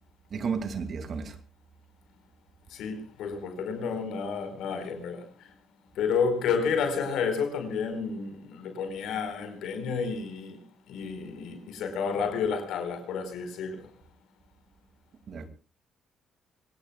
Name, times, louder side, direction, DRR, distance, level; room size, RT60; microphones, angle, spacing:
voice 1, 0.3-1.4 15.3-15.5, right 5 dB, 55° right, 2.5 m, -33 dB
voice 2, 2.7-5.5 5.9-10.6 10.9-13.9, left 5 dB, 85° left, 5.0 m, -31 dB
25.5 x 19.0 x 2.4 m
cardioid pair, 90°, 0 cm